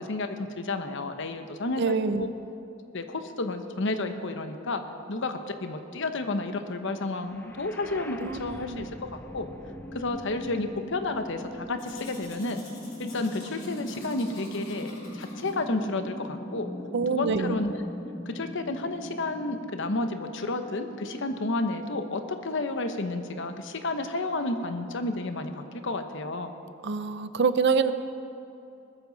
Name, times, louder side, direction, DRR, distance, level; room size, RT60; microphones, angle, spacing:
voice 1, 0.0-2.3 2.9-4.8 5.1-9.5 9.9-12.6 13.0-16.7 17.1-17.8 18.3-26.5, left 2 dB, 60° left, 7 dB, 1.0 m, -31 dB
voice 2, 1.8-2.4 8.2-8.9 16.9-17.6 26.8-27.9, right 5 dB, 55° right, 11 dB, 0.6 m, -26 dB
sound 1, 7.2-21.2, left 1 dB, 10° left, 0.5 m, -40 dB
Domestic sounds home sounds, 11.8-15.5, left 2 dB, 45° left, 4.2 m, -49 dB
19.5 x 13.5 x 4.1 m, 2.8 s
head